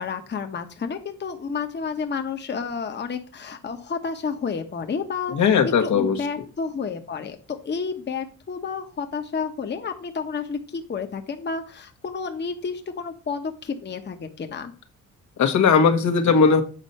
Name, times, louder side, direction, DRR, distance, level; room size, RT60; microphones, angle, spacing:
voice 1, 0.0-14.7, left 5 dB, 35° left, 6 dB, 1.0 m, -31 dB
voice 2, 5.3-6.2 15.4-16.6, left 5 dB, 70° left, 5 dB, 1.4 m, -18 dB
8.3 x 4.3 x 5.4 m, 0.39 s
cardioid pair, 90°, 30 cm